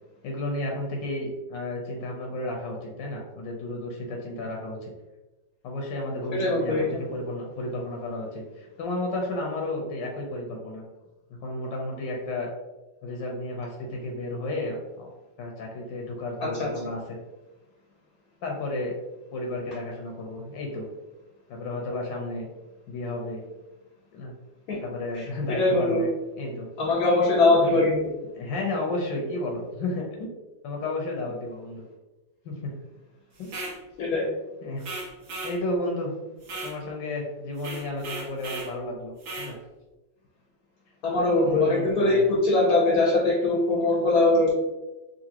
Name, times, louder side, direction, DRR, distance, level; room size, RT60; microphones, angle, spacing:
voice 1, 0.2-4.9 5.6-10.8 11.4-12.5 13.0-15.1 15.4-17.2 18.4-18.9 19.3-20.9 21.5-22.5 22.9-23.4 24.1-24.3 24.8-26.1 26.4-26.7 27.5-27.8 28.3-30.3 30.6-31.8 32.4-32.7 33.4-33.5 34.6-34.8 35.4-36.1 36.6-39.6 41.4-42.2, left 2 dB, 80° left, 0 dB, 1.4 m, -32 dB
voice 2, 6.3-7.1 16.4-16.7 24.7-24.8 25.1-25.3 25.6-26.0 26.8-28.0 34.0-34.3 41.0-44.5, left 2 dB, 60° left, -2 dB, 1.1 m, -22 dB
sound 1, 33.4-33.8 34.8-35.6 36.4-36.8 37.6-38.7 39.2-39.5, right 2 dB, 55° right, 1.1 m, -36 dB
3.9 x 2.8 x 2.8 m, 1.0 s
omnidirectional pair, 2.0 m